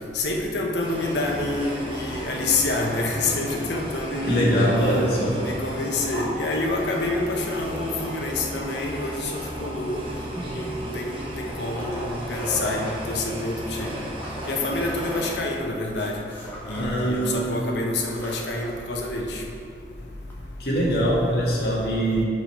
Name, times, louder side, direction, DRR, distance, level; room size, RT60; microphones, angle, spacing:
voice 1, 0.1-4.6 5.4-9.3 9.6-10.1 10.5-14.0 14.4-16.2 16.6-19.4, left 2 dB, 85° left, 0 dB, 1.0 m, -27 dB
sound 1, 0.8-15.3, right 1 dB, 30° right, 0.9 m, -35 dB
voice 2, 4.2-5.4 10.3-10.5 16.8-17.6 20.6-22.2, equal, 65° left, -5 dB, 1.8 m, -23 dB
sound 2, 11.1-13.0 13.6-17.3 17.7-17.8 18.0-18.8 20.3-20.4, equal, 10° left, 1.2 m, -38 dB
6.4 x 5.1 x 5.5 m, 2.6 s
head